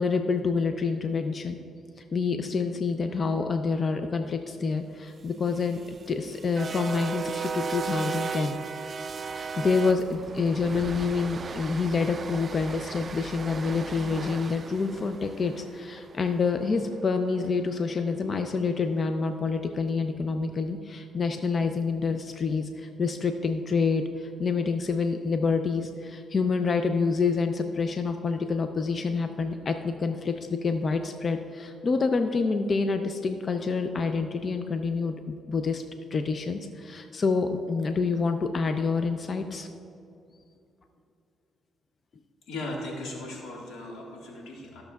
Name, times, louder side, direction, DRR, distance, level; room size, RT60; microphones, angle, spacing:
voice 1, 0.0-1.6 2.0-5.8 6.1-8.6 9.3-30.3 30.6-35.8 36.1-39.7, left 4 dB, 45° left, 6 dB, 0.5 m, -27 dB
sound 1, 5.3-17.5, right 5 dB, 45° right, 0.3 m, -37 dB
voice 2, 42.5-44.8, left 2 dB, 80° left, -2 dB, 1.6 m, -37 dB
13.5 x 6.6 x 2.3 m, 2.6 s
cardioid pair, 85°, 0 cm